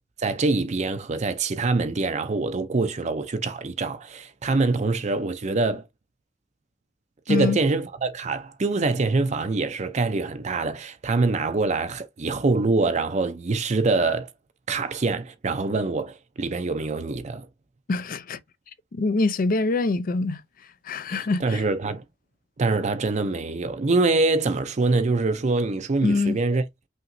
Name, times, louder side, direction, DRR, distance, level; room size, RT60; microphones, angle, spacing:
voice 1, 0.2-5.9 7.3-14.3 14.7-17.5 21.1-22.0 22.6-26.6, right 3 dB, 40° right, 0.5 m, -24 dB
voice 2, 7.3-7.6 17.9-18.4 18.9-20.4 20.8-21.6 26.0-26.4, left 3 dB, 50° left, 0.5 m, -24 dB
5.6 x 3.0 x 2.6 m
head